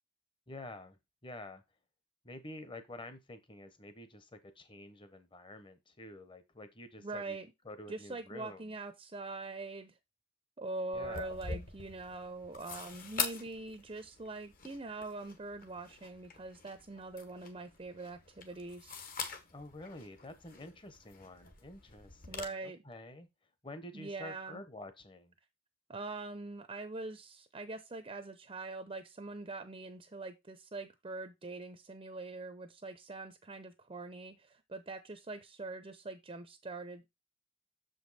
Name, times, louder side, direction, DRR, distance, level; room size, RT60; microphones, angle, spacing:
voice 1, 0.5-1.6 2.2-7.4 7.6-8.6 10.9-11.4 19.5-23.3 23.6-25.3, left 2 dB, 25° left, 1.0 m, -49 dB
voice 2, 7.0-7.5 7.9-10.0 10.6-19.0 22.3-22.8 23.9-24.6 25.9-37.1, right 3 dB, 30° right, 0.6 m, -43 dB
sound 1, 10.9-22.4, left 5 dB, 45° left, 1.2 m, -44 dB
6.9 x 5.3 x 4.1 m
head